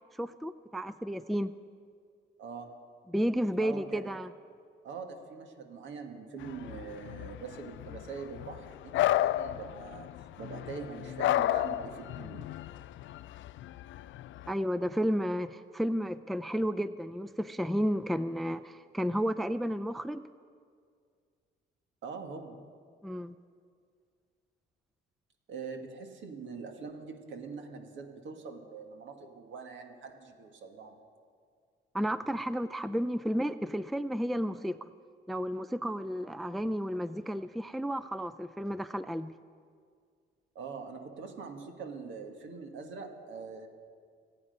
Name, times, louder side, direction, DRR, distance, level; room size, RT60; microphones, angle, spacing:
voice 1, 0.2-1.5 3.1-4.3 14.5-20.2 23.0-23.3 31.9-34.8 35.3-39.3, equal, ahead, 14 dB, 0.4 m, -32 dB
voice 2, 2.4-2.7 3.6-4.0 4.8-10.1 10.4-12.5 22.0-22.6 25.5-31.0 40.5-43.7, right 5 dB, 75° right, 4 dB, 1.9 m, -43 dB
sound 1, 6.4-14.5, left 14 dB, 75° left, 0.4 m, -33 dB
26.0 x 8.7 x 5.4 m, 2.1 s
cardioid pair, 90°, 20 cm